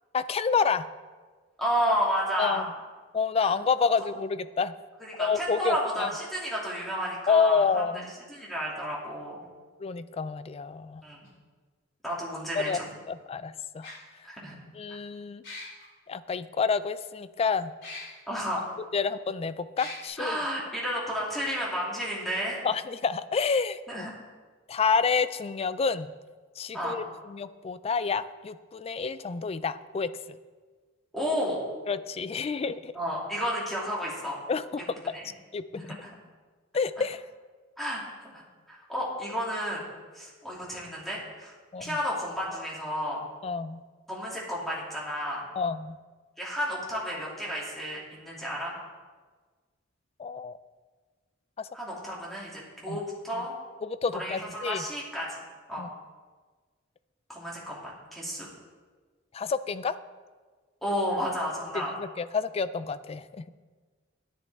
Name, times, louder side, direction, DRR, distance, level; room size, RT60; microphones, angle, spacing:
voice 1, 0.1-0.9 2.4-2.7 3.1-4.7 5.2-6.1 7.3-8.1 9.8-11.0 12.5-12.8 13.1-13.9 14.7-15.4 16.1-17.7 18.9-20.4 22.6-24.1 24.7-26.1 26.6-30.4 31.9-32.9 34.5-34.8 35.5-35.8 36.7-37.2 41.7-42.0 43.4-43.8 45.6-46.0 50.2-50.6 51.6-51.7 52.9-53.0 53.4-53.5 53.8-54.8 55.8-55.9 59.3-60.0 61.7-63.4, left 5 dB, 30° left, 14 dB, 0.3 m, -29 dB
voice 2, 1.6-2.7 5.0-7.8 8.3-9.4 11.0-11.2 12.0-12.8 14.2-14.5 14.9-15.0 18.3-18.7 20.2-22.6 23.9-24.1 26.7-26.9 31.1-31.6 32.9-34.4 35.1-35.3 35.7-36.1 37.8-39.9 40.1-41.5 41.8-43.2 44.1-45.4 46.4-48.7 51.7-53.5 54.1-55.3 55.7-55.9 57.3-58.5 60.8-61.9, equal, ahead, -5 dB, 2.6 m, -32 dB
sound 1, 11.3-11.4 12.8-12.9 13.8-13.9 15.4-15.8 17.8-18.0 18.7-18.8 19.8-20.0, left 3 dB, 65° left, 4.1 m, -40 dB
13.0 x 10.5 x 3.5 m, 1.4 s
head